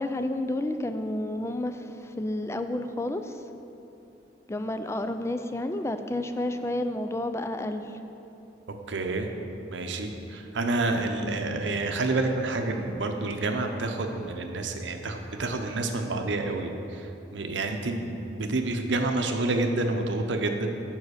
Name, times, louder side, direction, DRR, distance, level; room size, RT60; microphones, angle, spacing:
voice 1, 0.0-3.4 4.5-8.0 11.2-11.3, left 1 dB, 15° left, 8 dB, 0.3 m, -31 dB
voice 2, 8.7-9.3 9.7-20.7, right 2 dB, 80° right, 5 dB, 0.7 m, -29 dB
7.4 x 5.6 x 6.4 m, 2.9 s
head